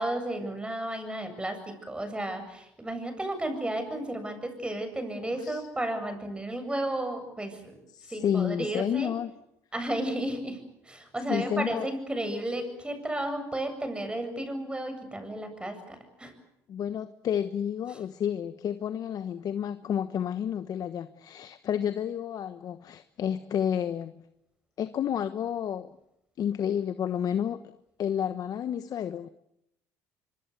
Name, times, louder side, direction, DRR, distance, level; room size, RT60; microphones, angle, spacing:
voice 1, 0.0-7.8 8.1-9.1 9.7-16.3, right 1 dB, 15° right, 8 dB, 7.7 m, -33 dB
voice 2, 5.2-5.6 7.9-9.3 11.3-11.9 16.7-24.1 24.8-25.9 26.4-27.7 28.0-29.3, left 9 dB, 55° left, 12 dB, 1.2 m, -30 dB
24.5 x 24.0 x 8.2 m, 0.81 s
supercardioid pair, 75°, 8 cm